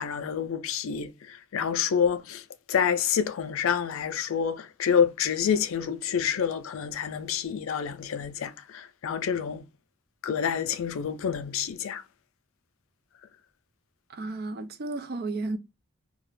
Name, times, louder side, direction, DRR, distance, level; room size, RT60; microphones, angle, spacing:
voice 1, 0.0-2.4 2.7-9.6 10.2-12.0, left 7 dB, 70° left, 0.4 m, -28 dB
voice 2, 14.1-15.6, right 2 dB, 45° right, 0.3 m, -33 dB
2.4 x 2.1 x 3.1 m
head